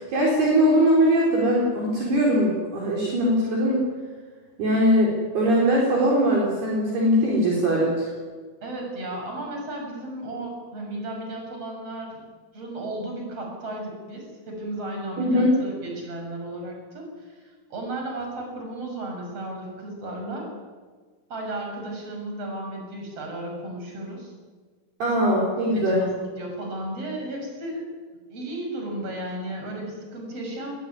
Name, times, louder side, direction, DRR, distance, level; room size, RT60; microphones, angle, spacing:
voice 1, 0.0-3.8 4.6-8.1 15.2-15.5 25.0-26.0, equal, 55° right, -3 dB, 6.3 m, -21 dB
voice 2, 8.6-12.2 12.5-20.5 21.3-24.3 25.2-28.0 28.3-30.7, right 1 dB, 30° right, 1 dB, 8.0 m, -34 dB
24.0 x 21.0 x 9.7 m, 1.4 s
omnidirectional pair, 5.8 m